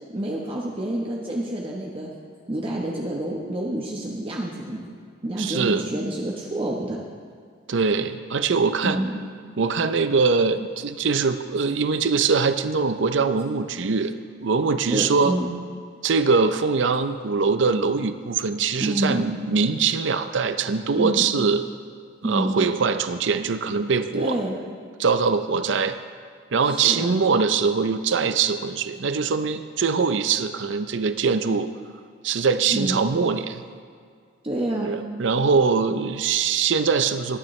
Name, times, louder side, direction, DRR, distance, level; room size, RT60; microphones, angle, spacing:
voice 1, 0.1-2.1 2.5-4.9 5.2-7.0 8.8-9.2 14.9-15.6 18.8-19.2 21.0-21.2 22.2-22.5 24.1-24.5 26.6-27.2 32.7-33.0 34.4-34.9, right 1 dB, 30° right, -2 dB, 1.0 m, -28 dB
voice 2, 5.4-5.9 7.7-9.0 9.6-14.1 14.4-15.4 16.0-21.6 22.2-24.4 25.0-26.0 26.5-31.7 32.2-33.6 34.8-37.4, right 5 dB, 65° right, 10 dB, 0.5 m, -22 dB
19.5 x 9.2 x 3.2 m, 2.1 s
head